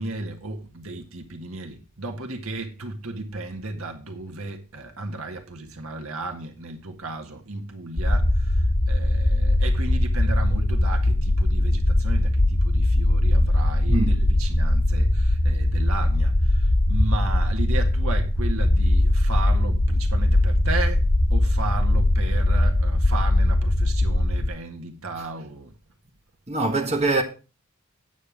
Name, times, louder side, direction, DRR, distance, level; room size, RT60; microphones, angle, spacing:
voice 1, 0.0-25.7, right 2 dB, 75° right, 1.7 m, -34 dB
sound 1, 8.0-24.5, left 1 dB, 85° left, 2.0 m, -20 dB
voice 2, 13.9-14.3 26.5-27.2, right 2 dB, 30° right, 1.6 m, -23 dB
9.3 x 7.7 x 5.0 m
head